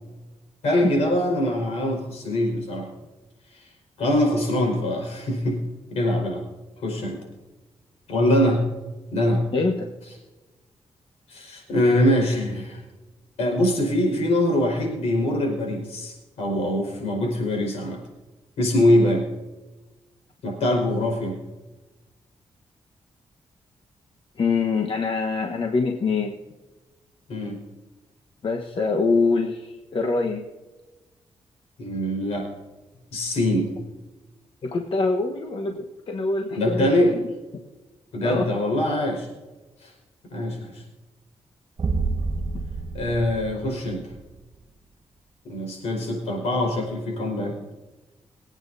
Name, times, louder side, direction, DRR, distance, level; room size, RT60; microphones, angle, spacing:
voice 1, 0.6-2.9 3.5-3.7 4.0-5.6 5.9-6.4 6.8-7.2 8.1-8.6 9.1-9.4 11.3-12.8 13.4-18.0 18.6-19.2 20.4-21.4 27.3-27.6 31.8-32.5 33.1-33.7 36.5-37.1 38.1-39.3 39.8-39.9 40.3-40.8 42.9-44.1 45.4-47.5, left 1 dB, 85° left, 0 dB, 4.8 m, -23 dB
voice 2, 9.5-9.9 24.4-26.4 28.4-30.5 34.6-37.3 38.2-38.5, left 4 dB, 55° left, 2 dB, 1.3 m, -24 dB
sound 1, 41.8-44.4, right 4 dB, 50° right, 1.7 m, -29 dB
23.5 x 9.0 x 2.8 m, 1.2 s
cardioid pair, 65°, 11 cm